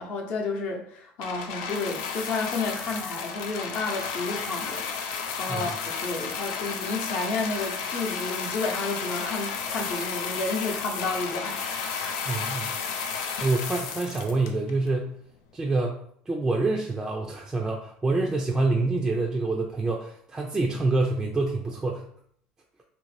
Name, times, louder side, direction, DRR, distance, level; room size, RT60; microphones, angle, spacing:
voice 1, 0.0-12.1, left 3 dB, 50° left, 1 dB, 0.7 m, -31 dB
sound 1, 1.2-14.9 15.6-15.7, left 6 dB, 85° left, 0.5 m, -33 dB
voice 2, 12.3-12.7 13.4-15.1 15.5-16.0 16.3-22.1, right 3 dB, 10° right, -1 dB, 0.3 m, -26 dB
2.7 x 2.5 x 3.1 m, 0.63 s
cardioid pair, 135°, 4 cm